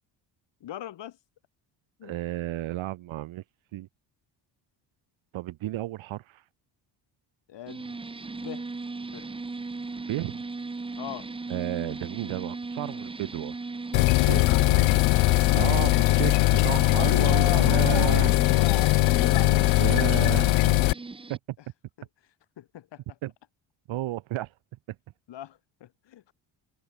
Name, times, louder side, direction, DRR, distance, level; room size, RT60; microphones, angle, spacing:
voice 1, 0.6-1.2 2.0-2.2 7.5-8.7 9.1-9.3 11.0-11.3 15.5-16.4 16.9-20.0 22.0-22.1 22.6-23.2 25.3-26.3, left 12 dB, 65° left, 2.8 m, -39 dB
voice 2, 2.0-3.4 3.7-3.9 5.3-6.4 10.1-10.4 11.5-13.6 14.0-14.5 15.5-18.3 19.8-20.5 21.3-21.4 23.2-23.3 23.9-24.5, right 15 dB, 80° right, 1.8 m, -32 dB
sound 1, 7.7-21.4, right 3 dB, 10° right, 0.7 m, -38 dB
sound 2, 13.9-20.9, left 21 dB, 80° left, 0.5 m, -21 dB
cardioid pair, 135°, 46 cm